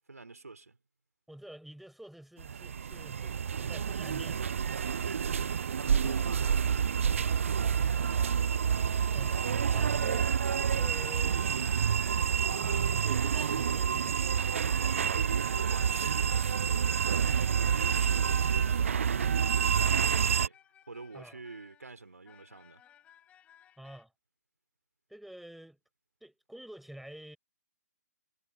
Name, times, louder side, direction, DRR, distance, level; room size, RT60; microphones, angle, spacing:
voice 1, 0.1-0.8 5.0-7.5 15.3-20.6 20.9-22.8, right 3 dB, 70° right, 3.2 m, -46 dB
voice 2, 1.3-4.5 6.0-6.4 9.1-9.4 9.7-10.4 10.7-11.7 12.5-14.5 21.1-21.4 23.8-24.1 25.1-25.8 26.2-27.4, right 1 dB, ahead, 5.9 m, -49 dB
sound 1, 2.4-20.5, right 7 dB, 55° right, 0.6 m, -28 dB
sound 2, 14.9-24.1, left 10 dB, 15° left, 4.3 m, -62 dB
figure-of-eight pair, 125°, 9 cm